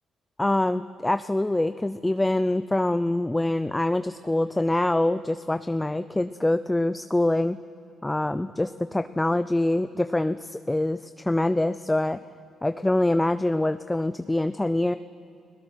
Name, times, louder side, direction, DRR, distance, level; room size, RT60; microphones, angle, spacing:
voice 1, 0.4-7.6 8.0-12.2 12.6-15.0, left 1 dB, 10° left, 12 dB, 0.5 m, -25 dB
29.5 x 17.0 x 6.2 m, 2.6 s
cardioid pair, 90°, 0 cm